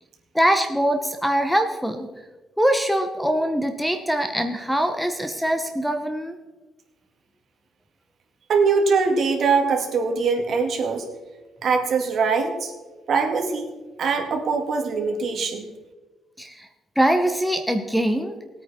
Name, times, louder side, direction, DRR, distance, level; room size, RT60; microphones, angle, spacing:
voice 1, 0.3-2.1 2.6-6.4 16.4-16.7 17.0-18.3, right 1 dB, ahead, 7 dB, 0.8 m, -23 dB
voice 2, 8.5-11.1 11.6-12.7 13.1-15.7, right 4 dB, 55° right, 4 dB, 2.0 m, -22 dB
19.0 x 8.9 x 4.3 m, 1.2 s
cardioid pair, 140°, 0 cm